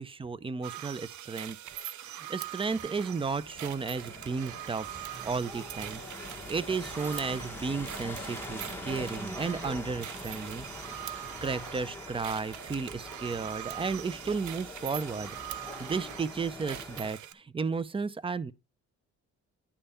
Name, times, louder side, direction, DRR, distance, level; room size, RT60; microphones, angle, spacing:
voice 1, 0.0-1.6 2.0-5.0 5.2-6.0 6.5-10.7 11.1-15.4 15.8-18.5, right 4 dB, 20° right, 0.5 m, -33 dB
sound 1, 0.6-17.3, right 12 dB, 70° right, 0.6 m, -42 dB
sound 2, 2.6-9.4, right 1 dB, 45° right, 4.0 m, -52 dB
sound 3, 3.0-17.1, left 2 dB, 5° left, 1.5 m, -44 dB
10.0 x 3.4 x 5.6 m
cardioid pair, 90°, 30 cm